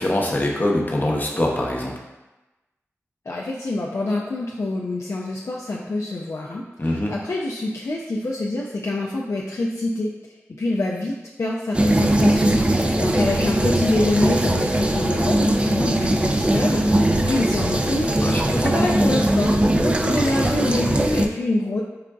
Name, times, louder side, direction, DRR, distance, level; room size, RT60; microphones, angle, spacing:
voice 1, 0.0-1.9 6.8-7.1 18.2-18.7, left 1 dB, 35° left, -2 dB, 0.7 m, -23 dB
voice 2, 3.3-10.1 10.6-21.8, left 2 dB, 60° left, -3 dB, 0.4 m, -26 dB
sound 1, 11.7-21.3, right 1 dB, 20° right, 0.3 m, -20 dB
4.8 x 2.5 x 2.3 m, 1.1 s
cardioid pair, 40°, 5 cm